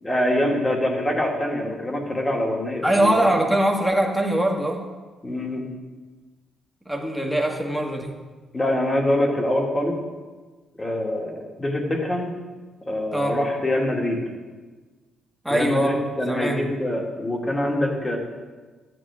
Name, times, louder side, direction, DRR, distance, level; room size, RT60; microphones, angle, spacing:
voice 1, 0.0-3.3 5.2-5.7 8.5-9.9 10.8-12.3 12.9-14.2 15.5-18.2, left 1 dB, 20° left, 0 dB, 2.4 m, -24 dB
voice 2, 2.8-4.9 6.9-8.2 13.1-13.4 15.4-16.6, right 1 dB, ahead, 1 dB, 1.8 m, -22 dB
13.5 x 9.4 x 3.7 m, 1.3 s
cardioid pair, 90°, 0 cm